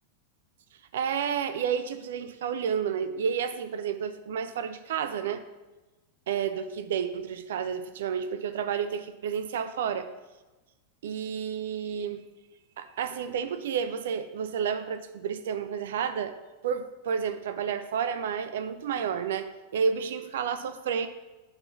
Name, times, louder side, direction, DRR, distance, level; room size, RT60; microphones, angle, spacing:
voice 1, 0.9-5.4 6.3-10.1 11.0-12.2 12.8-16.3 16.6-21.1, right 7 dB, 60° right, 11 dB, 0.4 m, -30 dB
8.6 x 4.1 x 5.8 m, 1.1 s
figure-of-eight pair, 90°, 0 cm